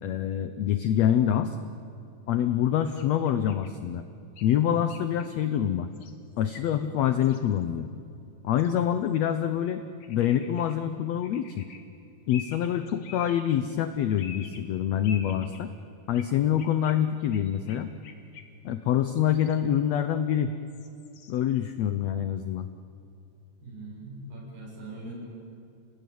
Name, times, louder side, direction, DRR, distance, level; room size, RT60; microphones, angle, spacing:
voice 1, 0.0-1.5 2.3-4.0 4.4-5.9 6.4-7.9 8.4-9.8 10.1-11.6 12.3-15.7 16.1-17.9 18.6-20.5 21.3-22.7, left 10 dB, 85° left, 10 dB, 1.5 m, -26 dB
sound 1, 3.0-3.7 4.4-4.5 4.9-5.3 5.9-6.1 6.4-6.7 7.2-7.6 8.6-8.8 10.0-10.8 11.2-11.8 12.3-13.6 14.2-14.6 15.0-15.6 16.1-16.3 16.6-18.7 19.2-19.6 20.7-21.4, left 6 dB, 60° left, 3.0 m, -47 dB
voice 2, 23.6-25.1, right 2 dB, 90° right, -3 dB, 9.8 m, -41 dB
30.0 x 19.5 x 9.4 m, 2.6 s
omnidirectional pair, 4.1 m